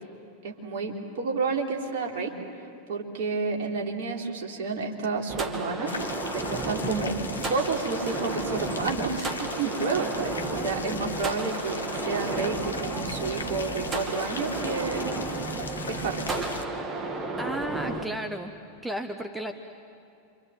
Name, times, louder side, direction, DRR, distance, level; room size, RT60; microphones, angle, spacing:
voice 1, 0.4-2.3 2.9-7.2 7.5-15.1 15.8-16.3, right 4 dB, 50° right, 0 dB, 3.9 m, -30 dB
sound 1, 5.3-18.0, right 3 dB, 20° right, 2.3 m, -33 dB
sound 2, 5.9-16.7, left 5 dB, 70° left, 1.1 m, -39 dB
voice 2, 17.4-18.5 18.8-19.5, right 1 dB, 5° right, 6 dB, 1.3 m, -33 dB
28.5 x 26.5 x 7.8 m, 2.6 s
figure-of-eight pair, 90°, 0 cm